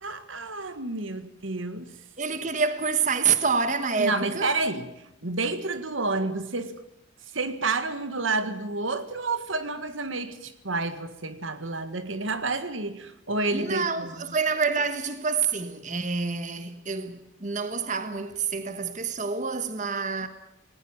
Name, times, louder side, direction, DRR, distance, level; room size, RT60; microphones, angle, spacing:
voice 1, 0.0-2.0 4.0-6.7 7.3-14.3, right 3 dB, 85° right, 1.8 m, -30 dB
voice 2, 2.2-4.5 13.5-20.3, right 5 dB, 40° right, 1.4 m, -27 dB
19.5 x 18.5 x 9.0 m
head